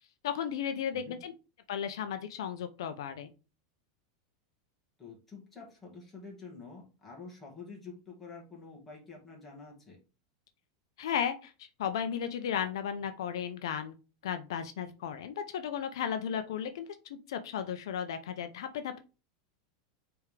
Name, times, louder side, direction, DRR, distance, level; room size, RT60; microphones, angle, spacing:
voice 1, 0.2-1.3 1.7-3.3 11.0-13.9 14.2-19.0, left 8 dB, 75° left, 9 dB, 0.6 m, -35 dB
voice 2, 5.0-10.0, left 4 dB, 10° left, -4 dB, 2.0 m, -48 dB
8.2 x 3.6 x 3.3 m, 0.33 s
supercardioid pair, 170°, 2 cm